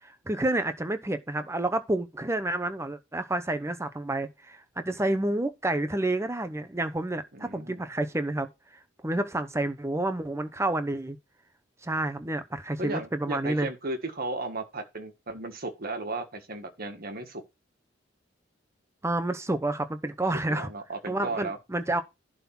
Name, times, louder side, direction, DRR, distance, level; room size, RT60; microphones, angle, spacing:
voice 1, 0.0-8.5 9.0-11.2 11.8-13.7 19.0-20.7 21.1-22.0, right 1 dB, 15° right, 0.9 m, -29 dB
voice 2, 7.3-7.8 12.8-17.4 20.5-21.6, right 2 dB, 50° right, 1.6 m, -35 dB
11.0 x 3.8 x 5.8 m
head